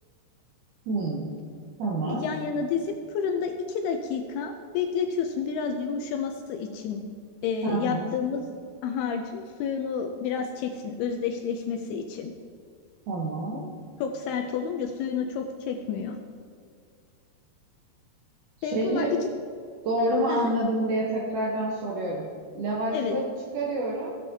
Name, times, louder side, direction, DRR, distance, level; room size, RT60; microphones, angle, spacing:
voice 1, 0.8-1.3 1.8-2.2 7.6-8.1 13.1-13.7 18.6-19.2 19.8-24.2, right 1 dB, 80° right, -2 dB, 1.8 m, -28 dB
voice 2, 2.1-7.0 7.4-8.4 8.8-12.3 14.0-16.2 18.6-19.2 20.3-20.5 22.9-23.2, left 6 dB, 80° left, 4 dB, 2.3 m, -30 dB
16.0 x 7.2 x 2.7 m, 2.1 s
omnidirectional pair, 5.0 m